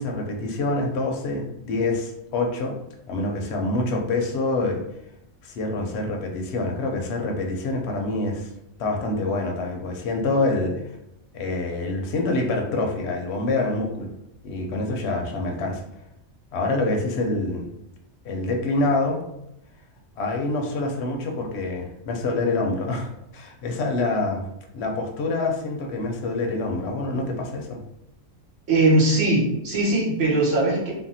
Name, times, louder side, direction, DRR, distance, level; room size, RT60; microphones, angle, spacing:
voice 1, 0.0-2.8 3.1-4.8 5.4-8.5 8.8-10.8 11.3-14.1 14.4-15.8 16.5-17.7 18.2-19.2 20.2-24.5 24.7-27.8, left 2 dB, 65° left, 2 dB, 0.8 m, -26 dB
voice 2, 28.7-30.9, right 2 dB, 70° right, -5 dB, 1.3 m, -20 dB
3.4 x 2.1 x 2.6 m, 0.83 s
omnidirectional pair, 1.3 m